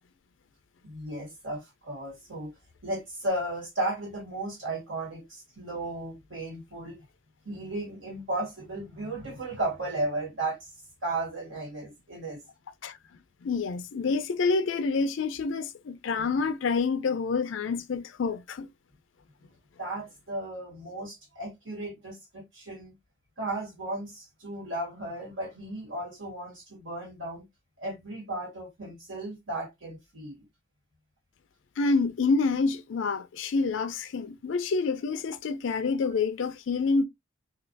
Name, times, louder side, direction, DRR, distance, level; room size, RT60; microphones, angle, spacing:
voice 1, 0.8-2.5 2.8-7.0 7.5-10.7 11.0-12.4 16.2-16.3 19.8-22.9 23.4-27.4 27.8-30.5, right 2 dB, 75° right, 2.1 m, -35 dB
voice 2, 13.4-18.7 31.8-37.0, left 4 dB, 70° left, 0.4 m, -27 dB
3.0 x 2.3 x 2.7 m
head